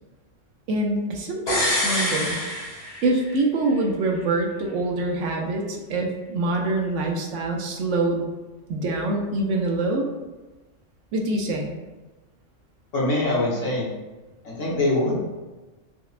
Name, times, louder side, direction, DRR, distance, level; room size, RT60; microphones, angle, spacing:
voice 1, 0.7-2.4 3.0-8.2 8.7-10.1 11.1-11.7, right 2 dB, 75° right, 1 dB, 0.9 m, -25 dB
sound 1, 1.5-3.4 3.7-3.8, left 1 dB, 55° left, 1.2 m, -26 dB
voice 2, 12.9-13.9 14.5-15.2, left 2 dB, 75° left, -5 dB, 1.3 m, -23 dB
4.9 x 2.1 x 2.4 m, 1.2 s
omnidirectional pair, 1.3 m